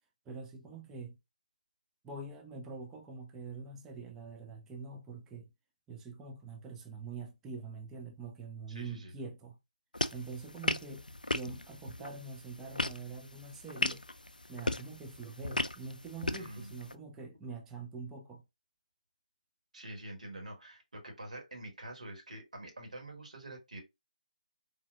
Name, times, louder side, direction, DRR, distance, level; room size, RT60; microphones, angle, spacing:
voice 1, 0.3-1.2 2.0-5.5 5.9-9.6 10.1-11.0 11.3-14.0 14.5-18.4, right 4 dB, 5° right, 0.3 m, -45 dB
voice 2, 8.7-9.1 16.3-16.8 19.7-23.8, right 1 dB, 60° right, 1.6 m, -46 dB
sound 1, 9.9-16.9, left 1 dB, 90° left, 0.3 m, -37 dB
3.8 x 2.6 x 2.4 m
figure-of-eight pair, 150°, 4 cm